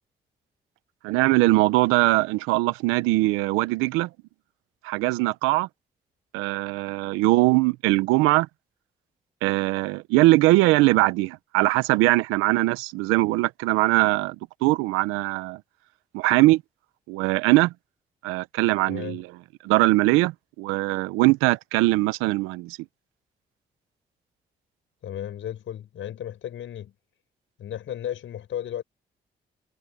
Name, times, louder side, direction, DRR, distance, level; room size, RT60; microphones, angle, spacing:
voice 1, 1.0-4.1 4.8-5.7 6.3-8.5 9.4-14.4 14.6-15.6 16.1-16.6 17.1-17.7 18.2-19.3 19.6-20.3 20.6-22.8, right 20 dB, 90° right, 1.0 m, -21 dB
voice 2, 18.9-19.2 25.0-26.9 27.6-28.8, left 10 dB, 70° left, 7.3 m, -34 dB
hypercardioid pair, 45°, 20 cm